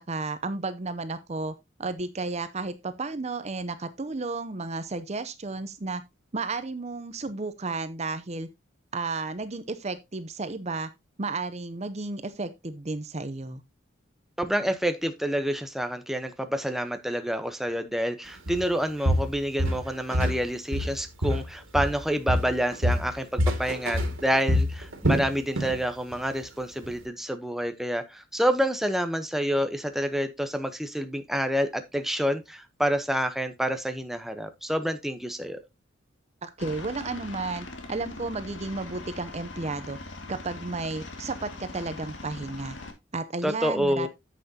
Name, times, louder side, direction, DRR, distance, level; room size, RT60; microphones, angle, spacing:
voice 1, 0.0-1.5 1.8-6.0 6.3-8.5 8.9-10.9 11.2-13.6 36.4-40.0 40.3-42.8 43.1-44.1, right 3 dB, 35° right, 0.7 m, -33 dB
voice 2, 14.4-35.6 43.4-44.1, equal, ahead, 0.8 m, -28 dB
Walk footsteps, 18.5-18.7 19.0-20.4 20.7-22.0 22.3-25.8 26.1-26.4 26.8-26.9, equal, 85° right, 2.3 m, -26 dB
Aircraft, 36.6-42.9, left 2 dB, 65° left, 2.0 m, -41 dB
9.8 x 7.9 x 2.8 m
head